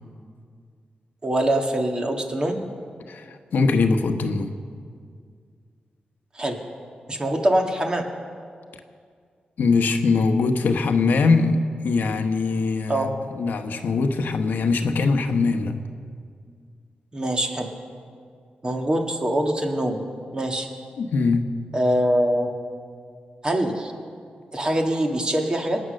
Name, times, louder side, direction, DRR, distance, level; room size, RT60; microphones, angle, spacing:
voice 1, 1.2-2.6 6.4-6.6 7.1-8.1 12.9-13.1 17.1-17.7 18.6-20.0 20.3-20.7 21.7-22.5 23.4-23.9 24.5-25.8, right 1 dB, 25° right, 2 dB, 1.9 m, -23 dB
voice 2, 3.1-4.5 9.6-13.1 13.4-15.7 21.0-21.5, left 4 dB, 85° left, 6 dB, 1.0 m, -22 dB
24.0 x 8.7 x 6.6 m, 2.1 s
wide cardioid pair, 105°, 3 cm